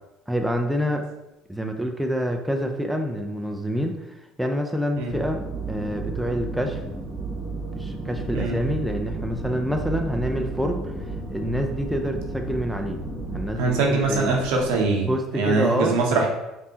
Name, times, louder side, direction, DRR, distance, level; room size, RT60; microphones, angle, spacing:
voice 1, 0.3-1.1 1.5-6.8 7.8-13.0 13.3-14.3 15.0-16.0, equal, 5° right, 3 dB, 0.5 m, -27 dB
sound 1, 5.1-13.5, right 4 dB, 20° right, 0.9 m, -33 dB
sound 2, 8.0-14.9, left 4 dB, 70° left, 0.6 m, -40 dB
voice 2, 13.6-15.1 15.3-16.3, right 3 dB, 70° right, 0 dB, 0.8 m, -22 dB
5.2 x 2.6 x 2.8 m, 0.96 s
hypercardioid pair, 65°, 0 cm